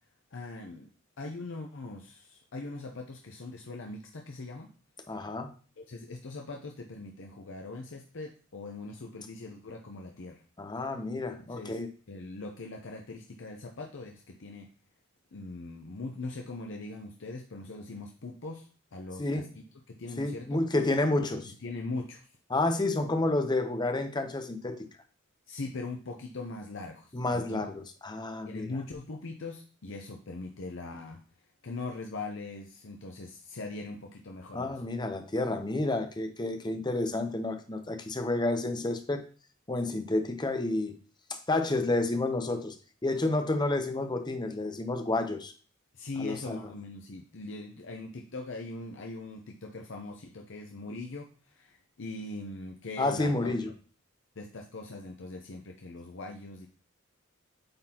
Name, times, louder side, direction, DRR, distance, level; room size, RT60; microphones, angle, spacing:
voice 1, 0.3-0.9 1.2-4.7 5.8-10.4 11.5-14.7 15.3-20.6 21.6-22.3 25.5-27.6 28.5-31.2 31.6-34.8 45.9-53.7 54.4-56.7, left 3 dB, 65° left, 2 dB, 0.7 m, -41 dB
voice 2, 5.1-5.5 10.6-11.9 19.2-19.5 20.2-21.5 22.5-24.9 27.1-28.7 34.5-39.2 39.7-40.9 41.3-42.8 43.0-45.5 46.2-46.6 53.0-53.7, left 2 dB, 20° left, 7 dB, 0.7 m, -30 dB
8.8 x 4.0 x 2.9 m, 0.39 s
head